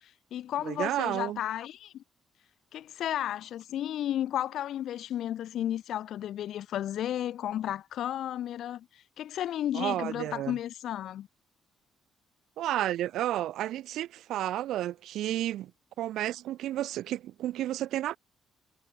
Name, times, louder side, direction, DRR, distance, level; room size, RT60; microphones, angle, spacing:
voice 1, 0.0-2.0 2.7-11.3, left 11 dB, 75° left, 1.4 m, -33 dB
voice 2, 0.6-1.4 9.7-10.6 12.6-15.7 16.0-18.2, right 13 dB, 80° right, 0.6 m, -31 dB
cardioid pair, 90°, 0 cm